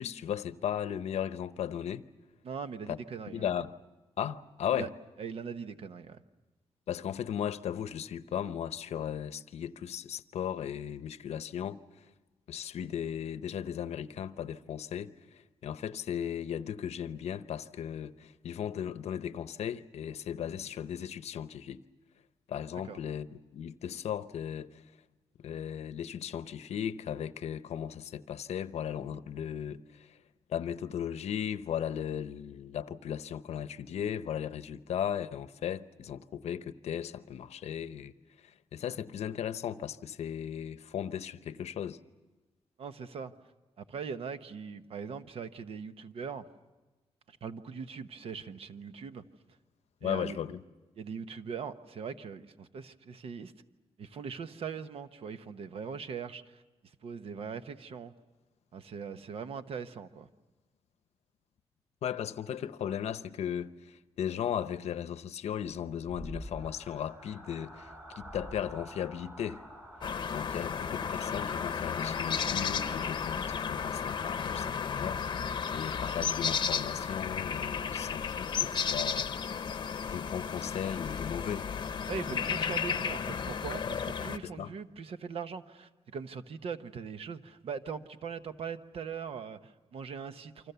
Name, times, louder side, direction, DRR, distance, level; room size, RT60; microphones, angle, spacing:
voice 1, 0.0-2.1 2.9-3.0 3.3-3.7 4.2-4.9 6.9-11.8 12.5-21.8 22.5-24.8 25.4-30.2 30.5-38.1 38.4-42.0 50.0-50.6 62.0-69.6 70.3-79.3 80.1-81.7 84.4-84.7, left 9 dB, 80° left, 0.8 m, -36 dB
voice 2, 2.4-3.5 4.8-4.9 5.2-6.2 22.8-23.0 42.8-43.3 43.8-46.5 47.3-49.2 50.0-50.4 51.0-53.5 54.0-56.6 57.0-58.1 58.7-60.3 82.1-90.7, right 6 dB, 65° right, 1.0 m, -40 dB
sound 1, 65.7-75.6, equal, 25° right, 3.1 m, -49 dB
sound 2, 70.0-84.4, left 6 dB, 45° left, 0.8 m, -33 dB
28.5 x 25.0 x 6.9 m
wide cardioid pair, 165°, 11 cm